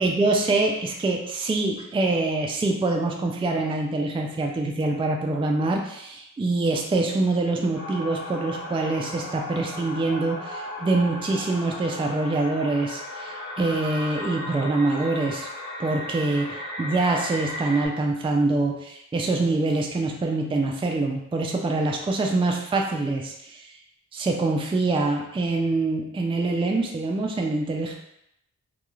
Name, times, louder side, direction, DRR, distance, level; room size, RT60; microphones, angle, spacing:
voice 1, 0.0-15.5 15.8-23.7 24.1-28.0, right 2 dB, 15° right, 1 dB, 0.3 m, -25 dB
sound 1, 7.7-17.9, left 1 dB, 60° left, 0.8 m, -36 dB
2.3 x 2.3 x 3.0 m, 0.79 s
cardioid pair, 60°, 32 cm